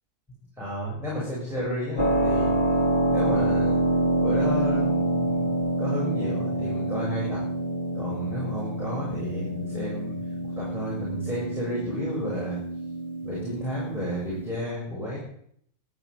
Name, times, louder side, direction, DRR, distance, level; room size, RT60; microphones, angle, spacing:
voice 1, 0.6-2.5 3.1-3.8 4.2-5.4 5.8-7.4 7.9-10.1 10.4-12.6 13.2-15.2, equal, ahead, -6 dB, 6.8 m, -32 dB
Keyboard (musical), 2.0-14.5, right 1 dB, 40° left, 1.6 m, -27 dB
13.5 x 12.0 x 8.0 m, 0.68 s
omnidirectional pair, 1.4 m